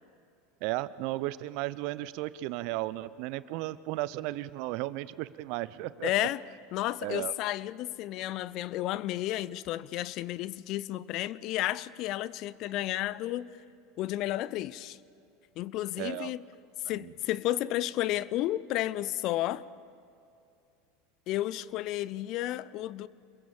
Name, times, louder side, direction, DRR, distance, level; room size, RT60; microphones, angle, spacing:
voice 1, 0.6-6.1 7.0-7.3 16.0-16.3 17.0-17.1, right 17 dB, 55° right, 0.7 m, -34 dB
voice 2, 6.0-6.4 6.7-13.5 14.0-15.0 15.6-16.4 16.9-19.6 21.3-23.1, left 15 dB, 50° left, 0.7 m, -32 dB
27.5 x 22.5 x 7.2 m
figure-of-eight pair, 80°, 0 cm